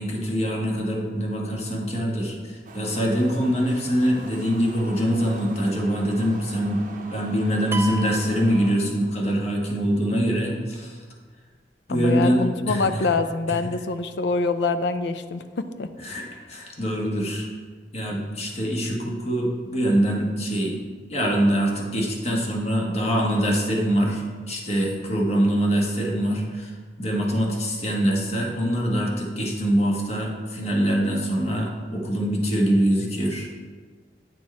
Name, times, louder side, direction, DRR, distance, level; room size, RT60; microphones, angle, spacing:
voice 1, 0.0-6.8 7.1-11.0 11.9-13.1 13.5-13.6 16.0-17.5 17.9-20.8 21.1-26.7 27.0-33.5, equal, 35° left, -1 dB, 1.2 m, -24 dB
sound 1, 2.7-8.8, right 2 dB, 45° right, 0.7 m, -42 dB
sound 2, 7.7-9.4, right 1 dB, 15° right, 0.3 m, -34 dB
voice 2, 11.9-15.9, left 3 dB, 70° left, 11 dB, 0.4 m, -25 dB
9.4 x 4.5 x 4.2 m, 1.6 s
head